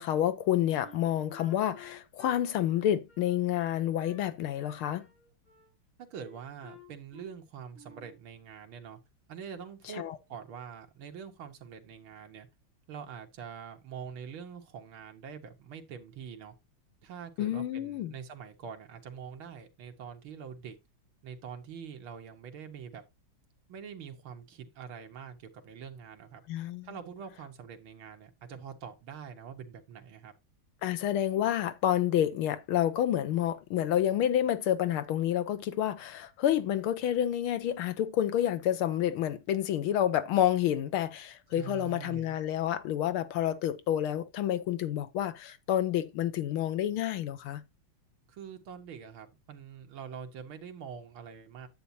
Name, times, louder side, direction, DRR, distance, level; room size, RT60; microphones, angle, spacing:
voice 1, 0.0-5.1 10.0-10.2 17.4-18.1 26.5-26.9 30.8-47.6, left 11 dB, 80° left, 1.7 m, -29 dB
Wind instrument woodwind instrument, 0.8-4.3 4.6-5.7 6.1-7.4 7.7-8.2, left 2 dB, 25° left, 4.9 m, -54 dB
voice 2, 6.0-9.0 9.3-10.0 10.3-12.5 12.9-16.5 17.0-20.8 21.2-23.0 23.7-26.4 26.8-30.3 41.5-42.4 48.3-51.7, right 7 dB, 75° right, 2.2 m, -44 dB
10.0 x 8.2 x 2.7 m
omnidirectional pair, 2.3 m